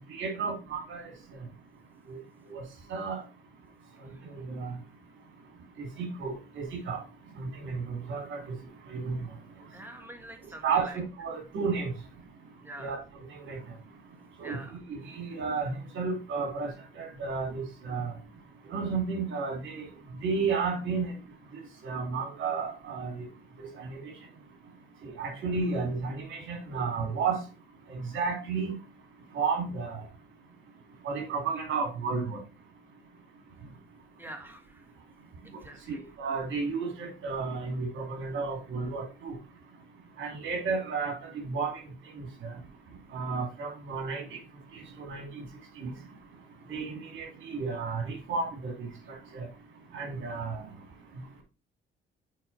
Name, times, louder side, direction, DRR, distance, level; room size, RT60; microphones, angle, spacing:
voice 1, 0.1-1.1 2.1-2.2 2.5-2.6 2.9-3.2 4.3-4.7 5.8-7.0 7.4-8.5 8.9-9.3 10.6-10.9 11.2-11.9 12.8-13.0 13.3-13.6 14.4-14.6 14.9-18.1 18.7-19.9 20.2-21.1 21.8-23.2 23.6-24.0 25.0-27.4 27.9-28.7 29.3-30.0 31.0-32.4 35.9-39.3 40.2-41.2 41.4-41.7 42.1-42.5 43.1-44.4 44.7-45.5 45.8-45.9 46.7-49.5 49.9-50.6, right 4 dB, 70° right, 3 dB, 3.0 m, -32 dB
voice 2, 4.0-4.3 9.7-11.0 12.6-13.0 14.4-14.8 34.2-34.9 35.4-36.0, right 1 dB, 10° right, 5 dB, 1.8 m, -46 dB
7.4 x 5.0 x 4.3 m, 0.32 s
cardioid pair, 90°, 20 cm